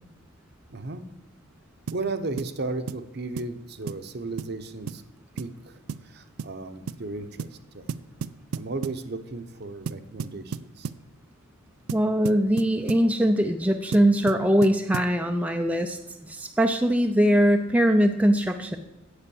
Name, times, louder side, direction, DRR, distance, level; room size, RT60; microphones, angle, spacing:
voice 1, 0.7-1.0 1.9-5.0 5.4-5.7 6.0-7.5 7.7-7.9 8.5-10.9, right 3 dB, 50° right, 9 dB, 0.8 m, -34 dB
sound 1, 1.9-2.1 2.4-2.6 2.9-3.1 3.4-3.5 3.9-4.1 4.4-4.6 4.9-5.0 5.4-5.6 5.9-6.1 6.4-6.6 6.9-7.0 7.4-7.6 7.9-9.0 9.9-11.1 11.9-13.1 13.9-15.2, right 6 dB, 85° right, 0.4 m, -34 dB
voice 2, 11.9-16.0 16.3-18.8, equal, 5° right, 5 dB, 0.4 m, -21 dB
8.3 x 8.1 x 7.0 m, 0.96 s
head